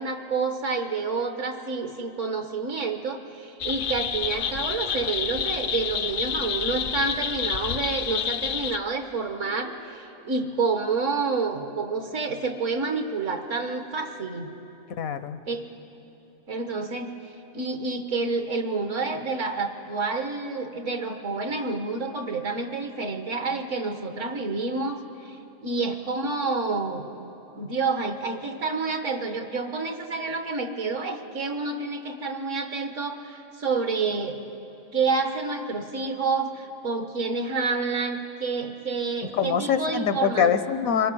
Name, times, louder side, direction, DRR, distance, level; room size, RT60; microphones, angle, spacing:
voice 1, 0.0-14.5 15.5-15.7 16.5-17.1 17.5-25.4 25.6-27.0 27.6-34.4 34.9-40.5, right 4 dB, 65° right, 6 dB, 1.5 m, -29 dB
sound 1, 3.6-8.8, left 7 dB, 70° left, 0.4 m, -29 dB
voice 2, 15.0-15.4 39.3-41.1, left 7 dB, 85° left, 11 dB, 1.3 m, -24 dB
25.0 x 18.0 x 6.2 m, 3.0 s
omnidirectional pair, 1.4 m